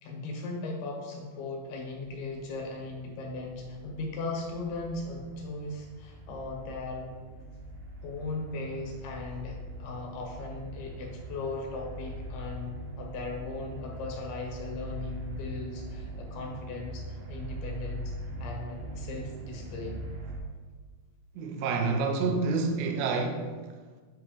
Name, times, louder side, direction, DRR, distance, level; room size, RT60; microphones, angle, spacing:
voice 1, 0.0-7.1 8.0-18.1 18.4-20.0, left 3 dB, 80° left, 0 dB, 2.9 m, -38 dB
sound 1, 1.8-20.4, right 1 dB, 70° right, 2.3 m, -42 dB
voice 2, 21.3-23.6, right 4 dB, 90° right, 4 dB, 1.6 m, -28 dB
8.4 x 3.0 x 5.0 m, 1.4 s
omnidirectional pair, 4.3 m